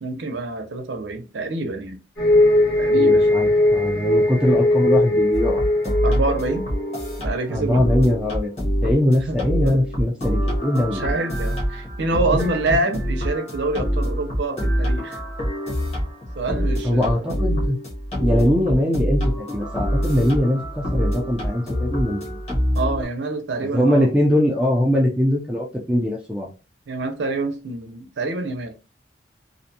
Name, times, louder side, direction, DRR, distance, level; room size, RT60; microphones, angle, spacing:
voice 1, 0.0-2.0 2.8-3.3 6.0-6.7 7.2-7.9 9.3-9.8 10.9-15.2 16.4-17.3 22.8-24.1 26.9-28.7, right 2 dB, 90° right, 0.5 m, -26 dB
sound 1, 2.2-7.1, left 1 dB, 65° left, 1.2 m, -19 dB
voice 2, 2.9-5.7 7.5-8.5 8.8-11.0 12.3-12.5 16.8-17.8 18.2-22.4 23.7-26.5, left 1 dB, 5° right, 0.4 m, -21 dB
sound 2, 5.3-23.0, equal, 35° left, 1.0 m, -25 dB
2.5 x 2.1 x 2.7 m
head